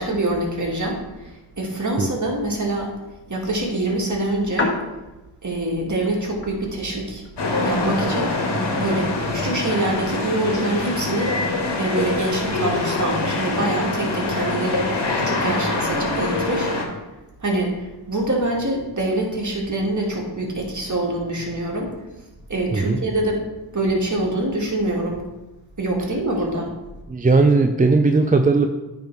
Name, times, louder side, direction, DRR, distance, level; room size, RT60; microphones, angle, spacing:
voice 1, 0.0-2.9 3.3-4.7 5.4-7.2 7.6-8.4 8.8-11.3 11.8-14.9 15.2-16.7 17.4-21.9 22.5-23.4 23.7-25.2 25.8-26.7, right 1 dB, 40° right, -1 dB, 2.1 m, -25 dB
sound 1, 1.0-19.2, left 2 dB, 25° left, 1.5 m, -39 dB
sound 2, 7.4-16.8, left 2 dB, 60° left, 1.5 m, -24 dB
voice 2, 22.7-23.0 27.1-28.7, right 3 dB, 20° right, 6 dB, 0.5 m, -17 dB
9.1 x 3.6 x 4.7 m, 1.1 s
cardioid pair, 45°, 46 cm